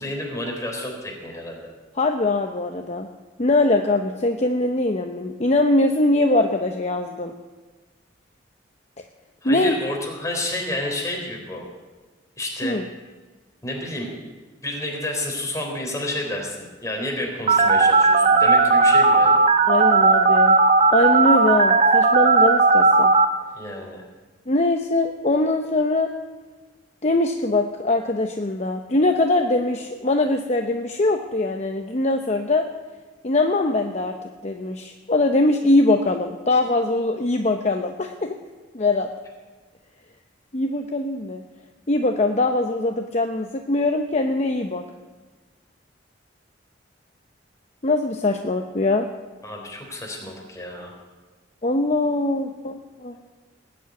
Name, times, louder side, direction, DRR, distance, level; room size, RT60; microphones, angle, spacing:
voice 1, 0.0-1.7 9.4-11.6 12.4-12.8 13.6-14.1 14.6-16.6 16.8-19.4 23.5-24.0 49.4-51.0, left 1 dB, 15° left, 0 dB, 3.6 m, -30 dB
voice 2, 2.0-3.1 3.4-7.3 9.4-9.7 12.6-12.8 19.7-20.6 20.9-23.1 24.5-26.1 27.0-32.7 33.2-34.1 34.4-38.4 38.7-39.1 40.5-41.4 41.9-44.8 47.8-49.1 51.6-53.2, left 2 dB, 40° left, 4 dB, 0.9 m, -22 dB
Telephone, 17.5-23.2, right 3 dB, 40° right, 1.1 m, -16 dB
19.5 x 7.7 x 9.5 m, 1.3 s
head